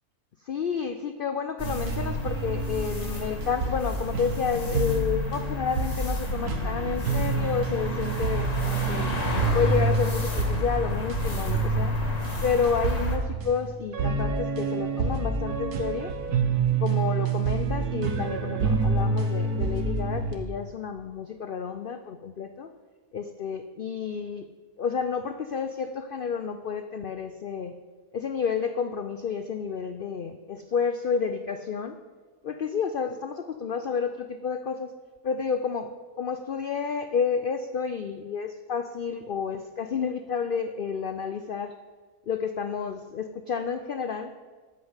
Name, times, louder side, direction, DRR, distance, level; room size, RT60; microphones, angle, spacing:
voice 1, 0.4-9.2 9.5-12.0 12.4-16.1 16.8-22.7 23.1-24.5 24.8-27.8 28.1-32.0 32.4-34.9 35.2-35.9 36.2-41.8 42.3-44.3, left 6 dB, 70° left, 9 dB, 0.5 m, -30 dB
sound 1, 1.6-13.2, equal, 25° left, 1.5 m, -32 dB
sound 2, 1.6-20.3, right 3 dB, 85° right, 1.6 m, -28 dB
13.5 x 5.5 x 8.0 m, 1.4 s
omnidirectional pair, 1.6 m